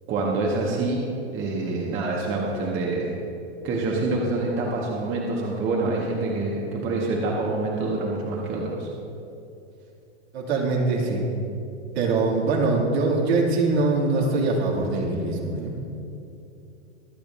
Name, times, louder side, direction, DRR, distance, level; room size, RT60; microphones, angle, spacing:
voice 1, 0.1-1.1 1.3-3.1 3.6-8.9, right 2 dB, 35° right, -2 dB, 1.7 m, -26 dB
voice 2, 10.3-11.3 11.9-15.8, right 3 dB, 65° right, -3 dB, 2.9 m, -23 dB
23.5 x 8.5 x 2.8 m, 2.7 s
hypercardioid pair, 110°, 34 cm